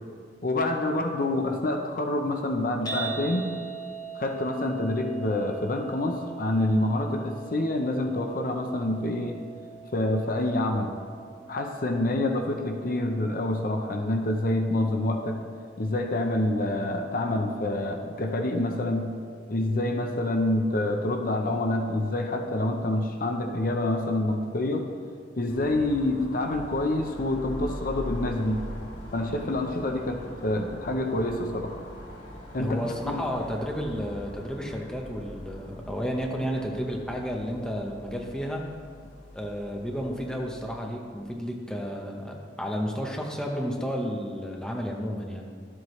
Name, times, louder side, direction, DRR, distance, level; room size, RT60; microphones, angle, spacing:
voice 1, 0.4-3.5 4.1-9.4 9.9-11.0 11.5-15.4 15.8-19.1 19.5-24.9 25.4-28.6 29.1-31.7 32.5-32.8 33.0-33.2, left 1 dB, 50° left, 4 dB, 0.7 m, -27 dB
sound 1, 2.9-19.1, right 6 dB, 20° left, 1.2 m, -43 dB
sound 2, 25.5-40.8, equal, 80° left, 2.5 m, -42 dB
voice 2, 32.6-38.6 39.3-45.5, equal, 5° left, 0 dB, 0.9 m, -32 dB
12.0 x 7.8 x 3.2 m, 2.2 s
head